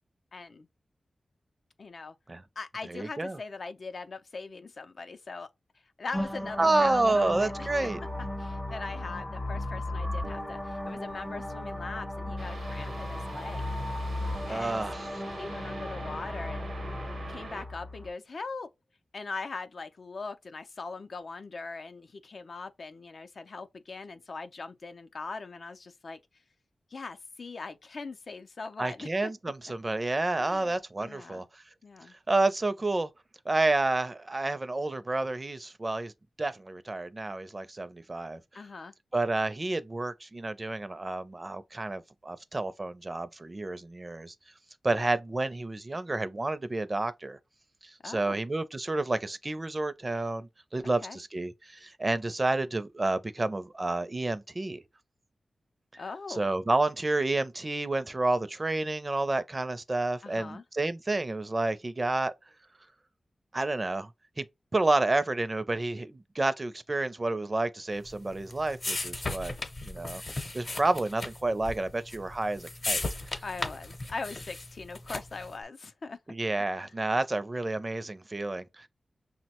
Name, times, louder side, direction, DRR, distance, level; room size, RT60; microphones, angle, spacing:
voice 1, 0.3-0.7 1.8-2.1 2.6-5.5 6.0-7.7 8.4-13.7 14.5-14.8 15.3-16.7 17.3-18.7 19.1-26.2 26.9-29.1 30.4-30.7 31.0-31.5 31.8-32.1 38.5-38.9 48.0-48.4 51.0-51.2 56.0-56.5 60.2-60.6 73.4-76.2 76.8-76.9, left 4 dB, 65° left, 0.4 m, -41 dB
voice 2, 2.9-3.4 6.6-8.0 14.5-15.1 28.8-31.6 32.3-33.1 33.5-36.1 36.4-38.4 39.1-44.3 44.8-47.4 47.8-54.8 56.3-62.3 63.5-64.1 64.4-64.5 64.7-69.5 69.8-70.2 70.5-73.0 76.3-78.9, right 2 dB, 35° right, 0.4 m, -30 dB
sound 1, 6.1-18.1, left 1 dB, 15° left, 0.5 m, -36 dB
sound 2, 12.4-17.6, right 3 dB, 80° right, 0.7 m, -44 dB
sound 3, 68.0-75.5, left 2 dB, 45° left, 0.8 m, -36 dB
5.6 x 2.1 x 2.8 m
cardioid pair, 60°, 0 cm